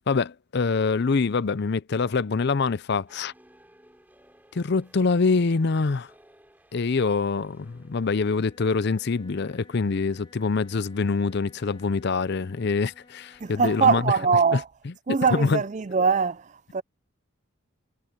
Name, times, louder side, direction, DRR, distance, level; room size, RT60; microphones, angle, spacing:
voice 1, 0.1-3.3 4.5-6.1 6.7-14.0 14.5-14.6 15.3-15.6, left 4 dB, 50° left, 0.5 m, -25 dB
sound 1, 3.1-8.4, right 1 dB, 10° right, 3.4 m, -58 dB
Wind instrument woodwind instrument, 7.5-14.7, left 2 dB, 20° left, 2.4 m, -56 dB
voice 2, 13.4-14.7 15.1-16.8, right 5 dB, 35° right, 0.4 m, -22 dB
head